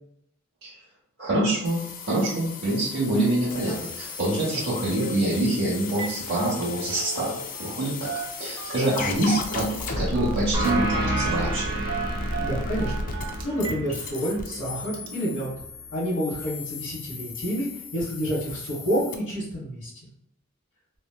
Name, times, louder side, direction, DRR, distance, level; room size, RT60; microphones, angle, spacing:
voice 1, 1.2-8.1 8.4-11.7, right 1 dB, 50° right, -8 dB, 0.9 m, -26 dB
sound 1, 1.6-19.2, left 3 dB, 40° left, 0.3 m, -35 dB
Telephone, 5.4-5.5 5.8-6.2 6.5-7.8 8.0-9.0 10.1-10.4 10.6-11.3 11.9-13.8 14.2-14.3 14.9-15.1, right 6 dB, 70° right, 0.5 m, -36 dB
sound 2, 10.5-15.7, right 1 dB, 15° right, 0.7 m, -31 dB
voice 2, 12.4-12.9 13.4-15.5 15.9-19.9, equal, 70° left, -10 dB, 1.3 m, -28 dB
3.1 x 2.7 x 2.2 m, 0.73 s
head